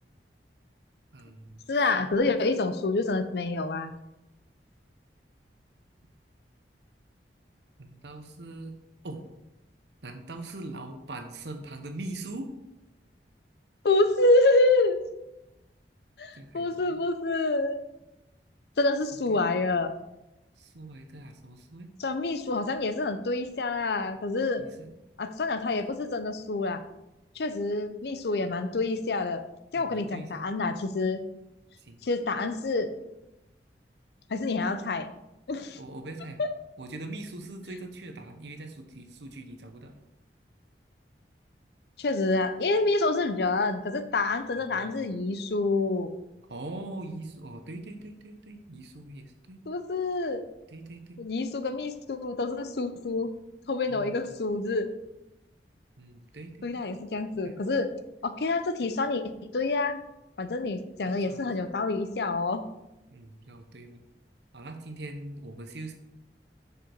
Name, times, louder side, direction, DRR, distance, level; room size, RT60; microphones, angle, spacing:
voice 1, 1.1-1.7 2.0-2.4 7.8-8.8 9.0-9.2 10.0-12.5 16.3-17.0 19.1-19.4 20.6-21.9 24.6-24.9 25.7-25.9 29.7-30.4 31.8-32.0 35.8-36.4 36.8-39.9 44.7-45.1 46.5-49.6 50.7-51.2 53.9-54.4 56.0-56.8 57.3-57.6 61.0-61.5 63.1-64.0 64.5-65.9, right 2 dB, 75° right, 5 dB, 1.0 m, -42 dB
voice 2, 1.7-3.9 13.8-15.0 16.2-17.8 18.8-19.9 22.0-24.6 25.2-26.8 27.4-29.4 29.7-31.2 32.0-32.9 34.3-35.1 35.5-35.8 36.4-36.5 42.0-46.2 49.7-50.4 51.2-53.3 53.7-54.9 56.6-57.9 58.2-60.0 60.4-62.6, left 2 dB, 65° left, 10 dB, 0.6 m, -27 dB
6.7 x 5.1 x 4.5 m, 0.94 s
head